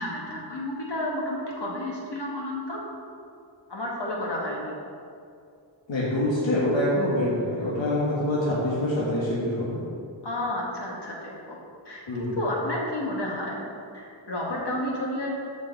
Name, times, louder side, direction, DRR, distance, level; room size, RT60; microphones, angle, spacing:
voice 1, 0.0-2.8 3.7-4.8 10.2-11.6 11.9-12.0 12.4-13.6 13.9-15.4, left 1 dB, 60° left, -3 dB, 2.1 m, -31 dB
voice 2, 5.9-9.8 12.1-12.4, left 1 dB, 75° left, -7 dB, 1.8 m, -25 dB
13.5 x 5.3 x 4.7 m, 2.5 s
wide cardioid pair, 85°, 45 cm